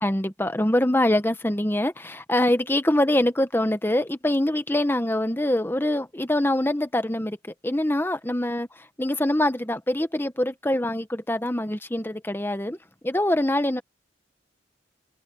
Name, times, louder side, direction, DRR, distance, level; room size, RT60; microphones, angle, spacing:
voice 1, 0.0-7.4 7.6-12.8 13.0-13.8, left 1 dB, 10° left, 1.0 m, -24 dB
head